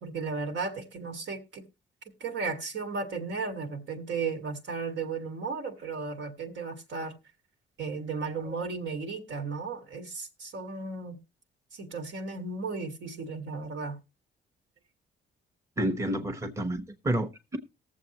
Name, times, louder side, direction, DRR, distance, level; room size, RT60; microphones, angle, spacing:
voice 1, 0.0-1.7 2.2-7.1 7.8-11.2 11.7-14.0, right 4 dB, 70° right, 1.8 m, -35 dB
voice 2, 15.8-17.6, right 1 dB, 15° right, 1.0 m, -30 dB
19.0 x 7.3 x 2.9 m
cardioid pair, 90°, 20 cm